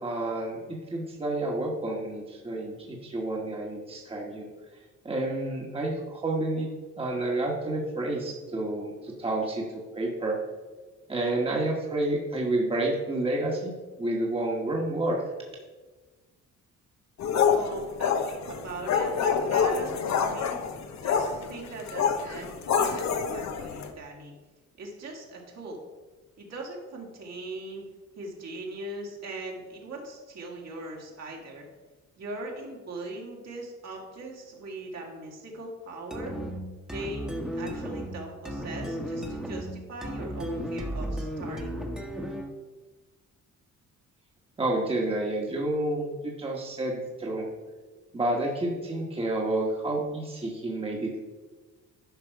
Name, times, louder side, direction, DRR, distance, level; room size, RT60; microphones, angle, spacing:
voice 1, 0.0-4.5 5.0-6.7 7.0-10.4 11.1-13.7 14.0-15.2 44.6-47.5 48.1-51.2, right 2 dB, 20° right, -2 dB, 1.5 m, -29 dB
sound 1, 17.2-23.9, left 6 dB, 65° left, 1.0 m, -27 dB
voice 2, 17.5-24.3 24.8-25.8 26.4-27.8 28.1-31.7 32.2-36.3 36.9-41.8, right 2 dB, 60° right, -2 dB, 2.4 m, -40 dB
sound 2, 36.1-42.6, equal, ahead, 1.3 m, -34 dB
10.5 x 5.6 x 4.7 m, 1.3 s
cardioid pair, 120°, 30 cm